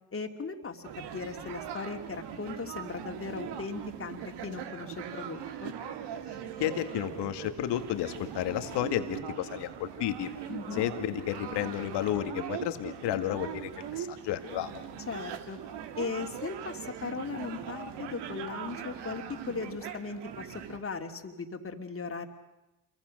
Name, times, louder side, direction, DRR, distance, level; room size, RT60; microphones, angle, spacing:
voice 1, 0.1-5.7 10.5-10.8 15.1-15.6 15.9-22.3, left 4 dB, 30° left, 4 dB, 2.9 m, -38 dB
sound 1, 0.8-20.8, right 9 dB, 70° right, 2.3 m, -41 dB
voice 2, 6.6-10.3 10.7-14.7, left 12 dB, 70° left, 8 dB, 2.1 m, -32 dB
28.5 x 23.5 x 6.6 m, 0.99 s
hypercardioid pair, 55°, 42 cm